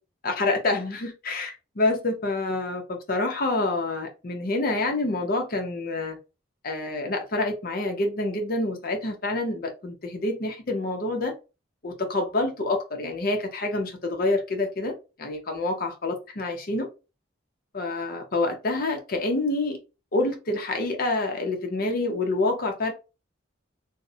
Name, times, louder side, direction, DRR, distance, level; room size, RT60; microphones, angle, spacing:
voice 1, 0.2-6.2 6.6-11.3 11.8-16.9 17.7-19.8 20.1-22.9, left 2 dB, 50° left, 0.6 m, -27 dB
2.4 x 2.0 x 2.6 m
head